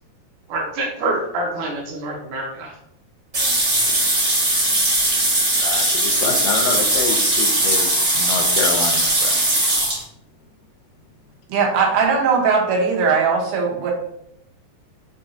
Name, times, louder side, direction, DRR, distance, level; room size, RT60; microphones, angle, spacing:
voice 1, 0.5-2.7, right 2 dB, 70° right, -2 dB, 2.0 m, -26 dB
sound 1, 3.3-10.0, right 1 dB, 50° right, 0.8 m, -19 dB
voice 2, 5.6-9.4, left 5 dB, 80° left, 3 dB, 2.1 m, -27 dB
voice 3, 11.5-13.9, right 5 dB, 90° right, -1 dB, 2.8 m, -19 dB
6.4 x 2.9 x 2.6 m, 0.74 s
omnidirectional pair, 4.2 m